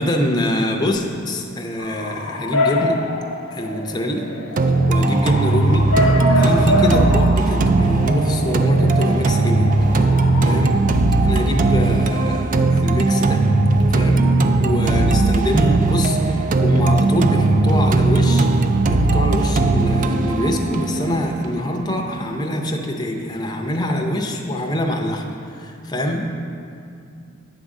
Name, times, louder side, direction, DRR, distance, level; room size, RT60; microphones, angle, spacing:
voice 1, 0.0-3.0 3.5-4.3 4.9-10.8 11.2-13.5 13.9-14.3 14.6-18.5 18.8-26.3, equal, 20° left, 2 dB, 0.6 m, -24 dB
Bark / Motor vehicle (road) / Siren, 1.8-10.5, left 1 dB, 65° left, 0.7 m, -25 dB
sound 1, 4.6-22.5, right 2 dB, 40° right, 0.3 m, -18 dB
8.9 x 3.6 x 6.3 m, 2.4 s
head